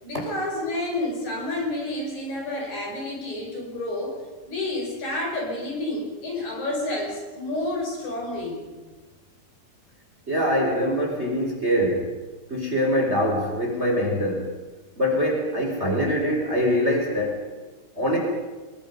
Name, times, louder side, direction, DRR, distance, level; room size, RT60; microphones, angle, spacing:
voice 1, 0.0-4.2 4.5-8.6, left 1 dB, 50° left, 0 dB, 7.3 m, -29 dB
voice 2, 10.3-12.1 12.5-14.5 15.0-17.4 18.0-18.2, equal, 15° right, 0 dB, 4.4 m, -23 dB
28.5 x 22.0 x 5.5 m, 1.3 s
omnidirectional pair, 4.5 m